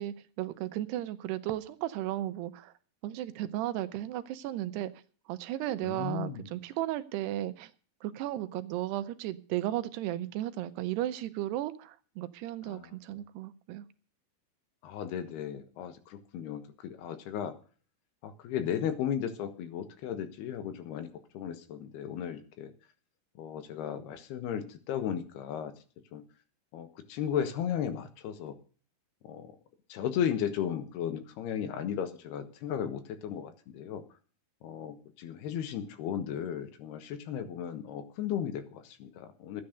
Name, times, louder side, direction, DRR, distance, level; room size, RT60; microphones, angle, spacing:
voice 1, 0.0-2.7 3.0-4.9 5.3-7.7 8.0-13.9, right 14 dB, 80° right, 12 dB, 2.9 m, -35 dB
voice 2, 5.8-6.5 12.7-13.0 14.8-17.5 18.2-21.1 21.3-22.7 23.4-25.7 26.1-26.2 26.7-28.6 29.2-29.5 29.9-34.0 34.6-39.6, left 9 dB, 80° left, 10 dB, 3.3 m, -35 dB
13.0 x 9.7 x 6.6 m, 0.40 s
omnidirectional pair, 4.7 m